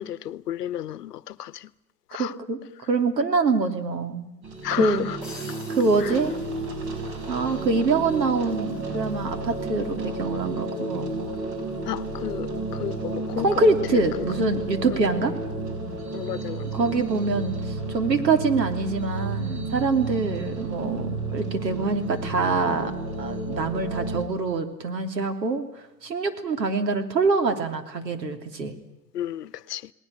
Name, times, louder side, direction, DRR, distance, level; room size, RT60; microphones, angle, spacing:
voice 1, 0.0-1.7 2.1-2.3 4.6-5.2 6.0-6.2 11.9-14.3 14.9-15.0 16.1-16.7 29.1-29.9, left 12 dB, 70° left, 0.9 m, -32 dB
voice 2, 2.2-2.6 2.9-4.3 4.8-5.1 5.8-6.3 7.3-11.1 13.4-15.3 16.7-22.9 23.2-25.6 26.0-28.7, right 3 dB, 80° right, 3.1 m, -25 dB
sound 1, 4.4-24.2, right 2 dB, 40° right, 6.1 m, -32 dB
sound 2, 5.2-7.3, left 3 dB, ahead, 4.1 m, -46 dB
29.0 x 19.5 x 6.5 m
hypercardioid pair, 115°, 49 cm